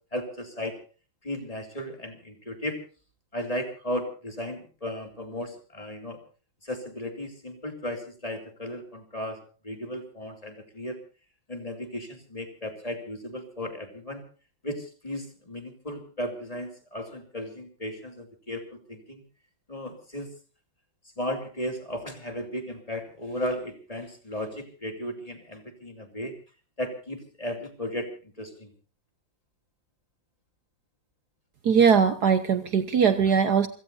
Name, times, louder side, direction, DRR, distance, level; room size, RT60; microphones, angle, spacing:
voice 1, 0.1-0.8 1.2-2.8 3.3-6.2 6.6-9.4 9.6-11.0 11.5-14.2 14.6-19.2 19.7-20.3 21.2-26.3 26.8-28.1 28.4-28.7, equal, 20° left, 5 dB, 2.6 m, -35 dB
voice 2, 31.6-33.7, right 6 dB, 60° right, 10 dB, 1.4 m, -20 dB
28.0 x 17.0 x 2.7 m, 0.36 s
omnidirectional pair, 2.2 m